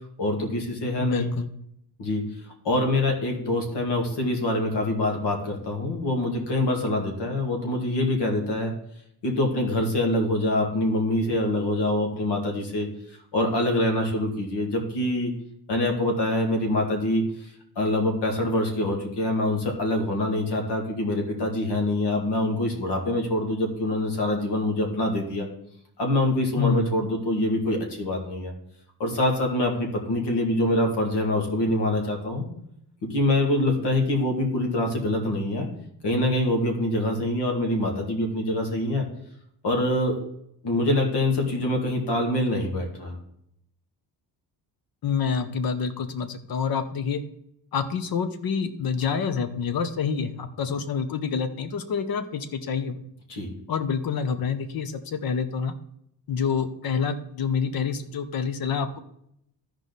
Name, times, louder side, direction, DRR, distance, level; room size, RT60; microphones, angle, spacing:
voice 1, 0.2-1.3 2.0-2.2 2.6-8.7 9.2-15.3 15.7-25.5 26.0-28.5 29.0-32.4 33.0-35.7 36.0-39.0 39.6-40.2 40.6-43.2 53.3-53.5, left 1 dB, 75° left, 2 dB, 2.4 m, -25 dB
voice 2, 1.0-1.5 26.6-27.0 45.0-47.2 47.7-53.0 53.7-55.7 56.3-59.0, left 6 dB, 60° left, 9 dB, 0.9 m, -27 dB
14.0 x 4.9 x 4.0 m, 0.74 s
wide cardioid pair, 160°, 41 cm